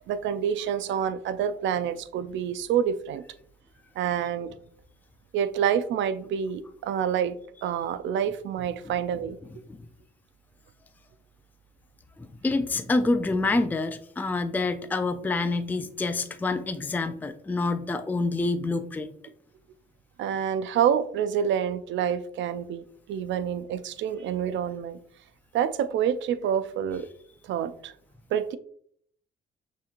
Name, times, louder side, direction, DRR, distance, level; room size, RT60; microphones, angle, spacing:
voice 1, 0.1-3.2 4.0-4.5 5.3-7.4 7.6-9.4 20.2-25.0 25.5-27.1 27.5-27.9 28.3-28.6, right 8 dB, 70° right, 0.4 m, -27 dB
voice 2, 12.2-19.1, left 3 dB, 10° left, 0.3 m, -27 dB
6.2 x 3.0 x 2.5 m
cardioid pair, 90°, 20 cm